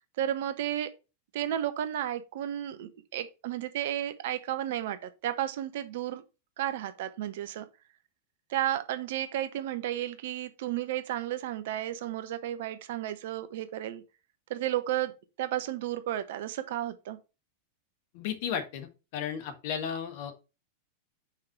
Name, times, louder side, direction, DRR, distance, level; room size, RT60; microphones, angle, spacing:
voice 1, 0.2-0.9 1.3-6.2 6.6-7.6 8.5-14.0 14.5-15.1 15.4-17.2, right 12 dB, 55° right, 0.7 m, -33 dB
voice 2, 18.1-20.3, left 8 dB, 50° left, 1.4 m, -34 dB
5.7 x 4.8 x 4.6 m
figure-of-eight pair, 90°, 0 cm